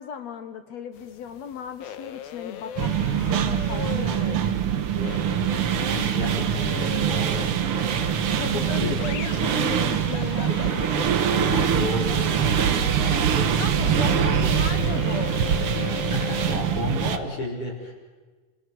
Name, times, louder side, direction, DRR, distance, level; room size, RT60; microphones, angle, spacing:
voice 1, 0.0-4.9 8.3-10.9 11.5-13.2 13.5-15.6, left 7 dB, 65° left, 9 dB, 1.9 m, -36 dB
sound 1, 1.0-16.6, left 9 dB, 85° left, 3.0 m, -37 dB
sound 2, 2.8-17.2, right 8 dB, 80° right, 1.2 m, -24 dB
voice 2, 5.8-7.5 8.5-9.0 10.5-12.2 13.4-14.3 15.7-17.9, left 2 dB, 40° left, -1 dB, 5.5 m, -33 dB
27.5 x 25.5 x 4.7 m, 1.3 s
omnidirectional pair, 4.0 m